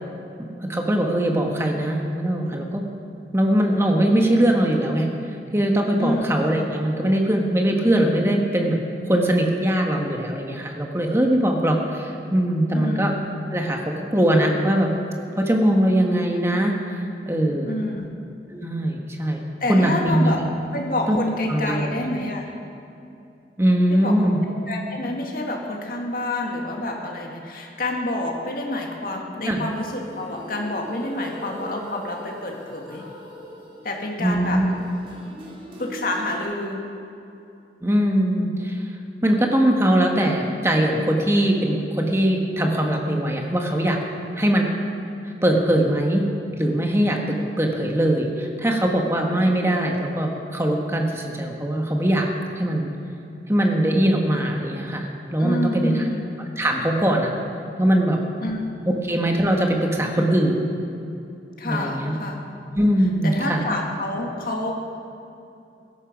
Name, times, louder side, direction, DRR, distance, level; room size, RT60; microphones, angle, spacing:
voice 1, 0.5-2.8 3.3-5.1 5.5-8.8 9.1-13.1 13.5-14.9 15.4-16.7 17.3-17.7 18.5-20.3 21.1-21.2 21.5-21.7 23.6-24.4 29.4-29.6 34.2-34.7 37.8-38.8 39.2-44.0 44.4-44.7 45.2-46.2 46.6-52.3 52.6-52.9 53.5-55.1 55.3-55.9 56.6-57.3 57.8-58.2 59.0-60.6 61.6-62.2 62.7-63.6, right 1 dB, 15° right, 1 dB, 1.5 m, -21 dB
voice 2, 12.7-13.0 17.7-18.1 19.6-20.4 20.7-22.5 23.9-24.2 24.7-33.0 33.8-34.6 35.8-36.9 55.4-56.2 58.4-58.6 61.6-62.4 63.2-64.8, left 1 dB, 55° left, 0 dB, 2.1 m, -28 dB
sound 1, 29.6-36.4, equal, 30° right, 2.5 m, -40 dB
16.5 x 14.0 x 5.3 m, 2.7 s
head